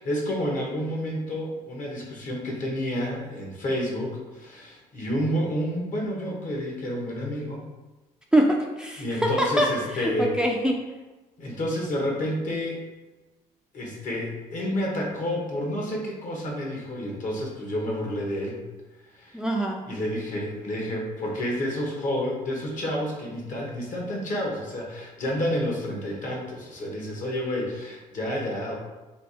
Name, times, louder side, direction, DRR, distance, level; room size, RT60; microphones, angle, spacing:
voice 1, 0.0-7.6 9.0-10.3 11.4-12.8 13.7-18.6 19.1-19.4 19.9-28.7, equal, 55° left, -1 dB, 1.3 m, -29 dB
voice 2, 8.3-10.8 19.3-19.9, right 1 dB, 5° right, 1 dB, 0.4 m, -24 dB
3.4 x 2.6 x 4.2 m, 1.1 s
supercardioid pair, 80°, 16 cm